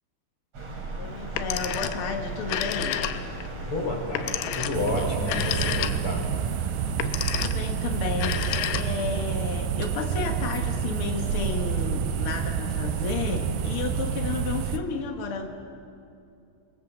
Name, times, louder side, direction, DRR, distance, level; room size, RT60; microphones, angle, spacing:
sound 1, 0.5-14.7, right 2 dB, 40° right, 4.5 m, -37 dB
voice 1, 1.0-3.0 7.3-15.5, left 5 dB, 70° left, 4 dB, 1.3 m, -32 dB
Telephone, 1.2-2.1 2.4-3.5 4.1-6.2 6.9-7.7 8.1-9.2, left 11 dB, 85° left, 3.0 m, -30 dB
voice 2, 3.7-6.3, left 2 dB, 35° left, 0 dB, 4.9 m, -30 dB
sound 2, 4.7-14.8, right 9 dB, 80° right, 2.1 m, -29 dB
26.5 x 22.0 x 7.3 m, 2.6 s
omnidirectional pair, 4.6 m